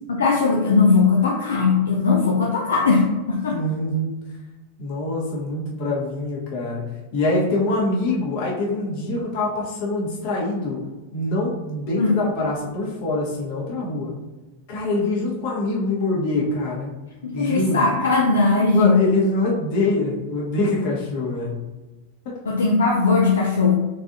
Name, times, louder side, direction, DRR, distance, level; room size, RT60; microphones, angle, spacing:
voice 1, 0.1-3.6 12.0-12.2 17.2-19.0 22.5-23.7, left 4 dB, 70° left, -2 dB, 0.5 m, -19 dB
voice 2, 3.5-4.2 4.8-6.8 7.1-10.8 11.1-14.1 14.7-16.9 17.3-17.9 18.7-21.5 22.2-22.4, left 2 dB, 45° left, -4 dB, 1.3 m, -24 dB
4.0 x 3.7 x 2.7 m, 1.1 s
figure-of-eight pair, 90°, 0 cm